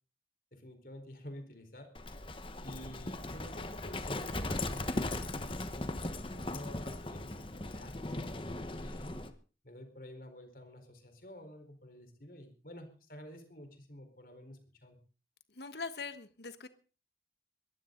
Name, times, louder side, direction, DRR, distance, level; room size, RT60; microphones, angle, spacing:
voice 1, 0.5-1.9 2.6-5.9 6.3-8.3 8.6-9.1 9.6-15.0, left 1 dB, 55° left, 6 dB, 4.5 m, -50 dB
Livestock farm animals working animals, 1.9-9.3, left 2 dB, 30° left, 1.3 m, -38 dB
voice 2, 15.5-16.7, left 4 dB, 70° left, 11 dB, 1.4 m, -42 dB
22.0 x 15.0 x 4.0 m, 0.37 s
head